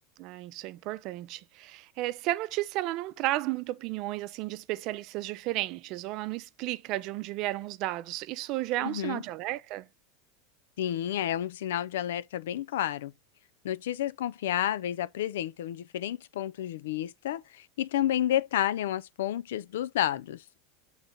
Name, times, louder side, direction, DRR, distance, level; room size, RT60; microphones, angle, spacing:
voice 1, 0.2-9.9, right 17 dB, 55° right, 0.5 m, -33 dB
voice 2, 8.8-9.2 10.8-13.1 13.6-20.4, left 11 dB, 85° left, 0.4 m, -30 dB
7.1 x 4.0 x 3.7 m
supercardioid pair, 120°, 0 cm